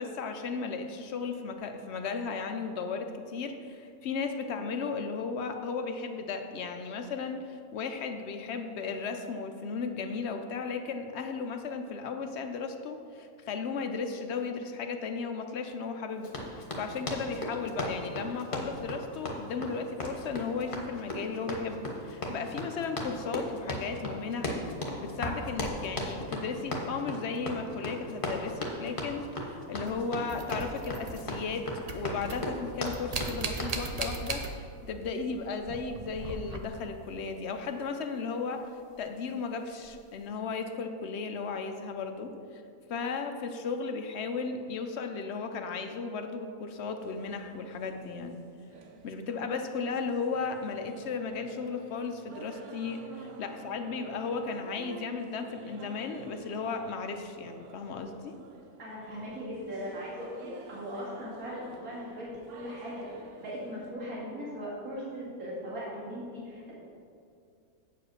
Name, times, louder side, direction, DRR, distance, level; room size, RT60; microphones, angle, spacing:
voice 1, 0.0-24.6 25.0-31.6 31.9-34.4 34.8-38.6 39.0-42.6 42.9-48.4 49.0-58.4, left 5 dB, 60° left, 6 dB, 0.8 m, -35 dB
Run, 16.2-33.8, left 1 dB, 40° left, 1.2 m, -36 dB
sound 1, 29.9-31.5 31.8-35.0 35.2-37.0 38.9-39.0 39.8-40.0, right 3 dB, 55° right, 0.4 m, -38 dB
sound 2, 47.0-63.9, right 4 dB, 90° right, 1.3 m, -51 dB
voice 2, 58.8-63.0 63.4-66.7, equal, 70° right, -8 dB, 2.6 m, -39 dB
8.1 x 4.9 x 6.4 m, 2.5 s
omnidirectional pair, 1.5 m